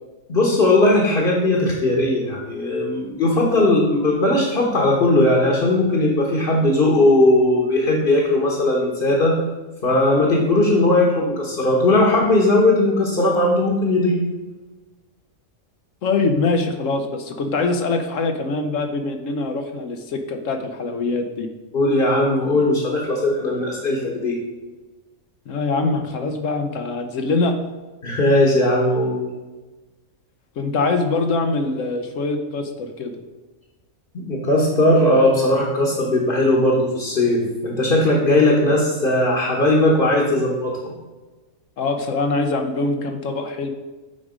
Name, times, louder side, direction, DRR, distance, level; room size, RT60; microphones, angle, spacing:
voice 1, 0.3-9.4 9.8-14.2 21.7-24.4 28.0-29.2 34.1-40.9, left 1 dB, 45° left, -3 dB, 1.4 m, -18 dB
voice 2, 16.0-21.5 25.5-27.6 30.6-33.1 41.8-43.7, left 3 dB, 65° left, 6 dB, 1.1 m, -23 dB
7.9 x 5.0 x 5.0 m, 1.2 s
omnidirectional pair, 1.4 m